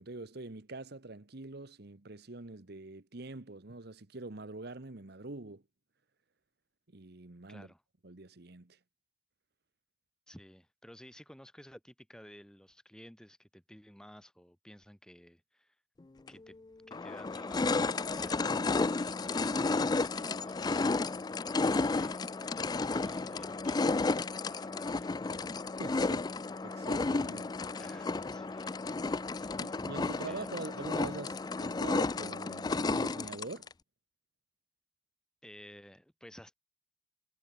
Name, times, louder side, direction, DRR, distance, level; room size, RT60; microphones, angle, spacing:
voice 1, 0.0-5.6 6.9-7.7 8.0-8.8 25.8-26.3 26.6-27.5 29.6-33.7, right 2 dB, 55° right, 1.2 m, -44 dB
voice 2, 7.5-7.8 10.3-15.8 16.3-16.6 16.9-18.6 21.6-24.1 24.5-25.5 27.8-28.8 30.2-30.5 35.4-36.5, equal, 5° left, 1.4 m, -55 dB
sound 1, 16.3-16.4 16.9-33.7, left 3 dB, 20° left, 0.3 m, -32 dB
head